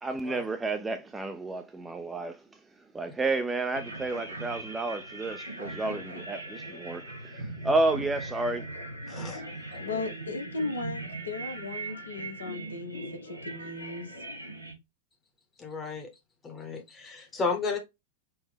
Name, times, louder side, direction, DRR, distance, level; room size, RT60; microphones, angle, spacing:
voice 1, 0.0-2.6 2.9-8.7, right 2 dB, 15° right, 0.4 m, -31 dB
sound 1, 3.7-14.7, right 2 dB, 85° right, 0.9 m, -40 dB
voice 2, 9.1-9.4 9.9-10.0 15.6-16.1 16.4-17.8, left 4 dB, 20° left, 0.9 m, -33 dB
voice 3, 9.8-14.1, left 3 dB, 70° left, 0.8 m, -36 dB
4.6 x 2.1 x 3.2 m
figure-of-eight pair, 90°, 0 cm